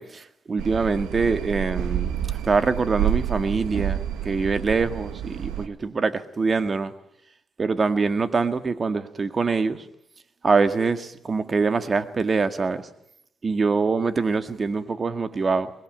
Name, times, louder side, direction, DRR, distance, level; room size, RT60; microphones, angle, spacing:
voice 1, 0.0-6.9 7.6-9.9 10.4-12.9 13.4-15.7, right 4 dB, 35° right, 1.8 m, -24 dB
sound 1, 0.6-5.7, right 11 dB, 85° right, 1.5 m, -29 dB
22.5 x 21.5 x 9.3 m
cardioid pair, 90°, 0 cm